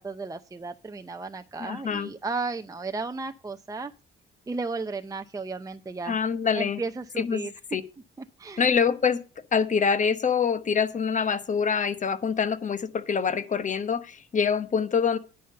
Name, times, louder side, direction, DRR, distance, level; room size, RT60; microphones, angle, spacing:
voice 1, 0.0-3.9 4.5-6.2 6.5-7.5 8.4-8.6, right 3 dB, 15° right, 6 dB, 0.6 m, -34 dB
voice 2, 1.6-2.1 6.0-6.8 7.2-7.8 8.6-9.2 9.5-15.2, left 6 dB, 40° left, 12 dB, 1.1 m, -25 dB
10.0 x 5.6 x 6.5 m, 0.34 s
cardioid pair, 90°, 20 cm